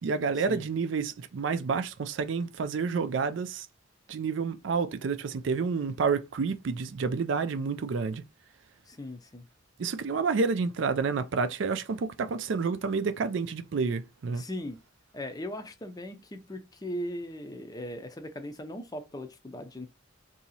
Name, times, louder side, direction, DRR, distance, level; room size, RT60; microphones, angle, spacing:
voice 1, 0.0-3.7 4.1-8.2 9.8-14.4, right 5 dB, 65° right, 0.4 m, -29 dB
voice 2, 8.9-9.5 14.4-14.8 15.1-19.9, left 1 dB, 20° left, 0.5 m, -38 dB
2.9 x 2.7 x 4.1 m
head